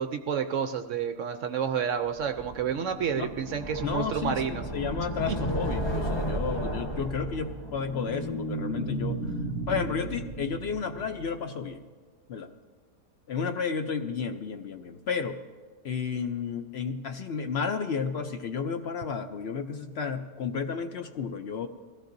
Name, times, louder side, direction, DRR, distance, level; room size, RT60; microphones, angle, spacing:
voice 1, 0.0-4.6 5.3-5.4, right 7 dB, 70° right, 7 dB, 0.7 m, -30 dB
sound 1, 2.2-9.2, right 1 dB, 20° left, 0.7 m, -34 dB
voice 2, 3.8-4.4 4.7-9.2 9.7-11.8 12.3-12.5 13.3-15.4 15.8-21.7, left 6 dB, 65° left, 7 dB, 0.6 m, -32 dB
sound 2, 7.4-11.7, right 1 dB, 40° left, 1.5 m, -35 dB
21.5 x 15.5 x 2.6 m, 1.5 s
omnidirectional pair, 1.7 m